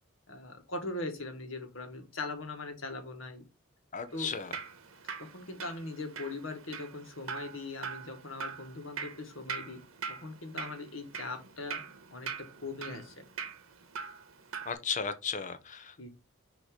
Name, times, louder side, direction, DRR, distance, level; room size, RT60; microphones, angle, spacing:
voice 1, 0.3-3.4 4.1-4.3 5.2-9.8 10.1-11.8 12.1-13.2 16.0-16.1, left 2 dB, 70° left, 1.7 m, -40 dB
voice 2, 3.9-4.5 14.7-16.1, left 6 dB, 35° left, 0.8 m, -35 dB
Drip, 4.1-14.7, right 6 dB, 80° right, 1.2 m, -43 dB
6.4 x 3.2 x 5.0 m
head